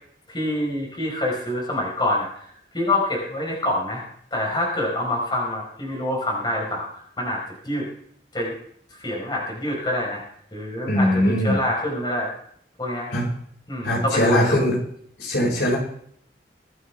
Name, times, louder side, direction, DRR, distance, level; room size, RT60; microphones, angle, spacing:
voice 1, 0.3-2.3 2.7-4.0 4.3-6.9 7.2-7.9 8.3-8.5 9.0-10.2 10.5-12.3 12.8-13.2 13.7-14.6, left 1 dB, 25° left, -2 dB, 4.9 m, -26 dB
voice 2, 10.9-11.6 13.1-13.3 13.8-14.7 15.2-15.8, equal, 80° left, -4 dB, 5.7 m, -21 dB
23.5 x 9.3 x 3.6 m, 0.64 s
head